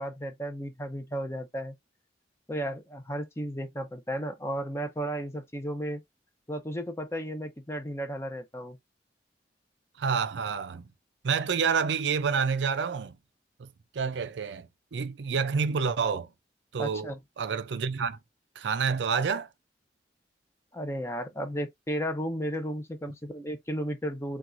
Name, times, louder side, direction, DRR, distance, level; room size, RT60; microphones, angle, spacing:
voice 1, 0.0-1.7 2.5-6.0 6.5-8.8 16.8-17.2 20.7-24.4, equal, 15° left, 0.7 m, -34 dB
voice 2, 10.0-10.9 11.2-13.2 13.6-13.7 13.9-16.3 16.7-18.2 18.6-19.5, right 6 dB, 80° right, 0.5 m, -28 dB
5.9 x 2.4 x 2.6 m
head